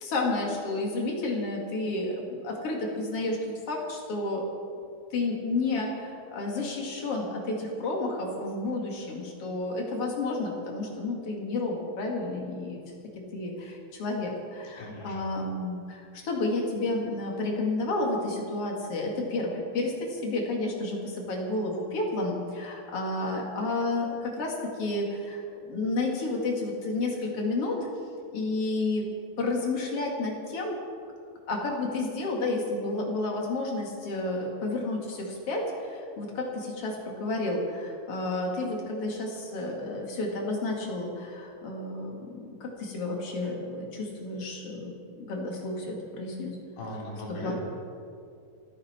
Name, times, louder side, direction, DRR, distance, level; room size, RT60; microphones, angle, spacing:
voice 1, 0.0-3.4 3.7-4.5 5.1-12.8 13.3-24.5 24.8-27.8 28.3-29.1 29.4-30.7 31.5-44.9 45.2-46.6 47.3-47.5, left 2 dB, 40° left, -1 dB, 2.3 m, -31 dB
voice 2, 14.8-15.1 46.8-47.5, left 1 dB, 70° left, -5 dB, 6.1 m, -38 dB
29.0 x 9.7 x 4.5 m, 2.5 s
omnidirectional pair, 5.3 m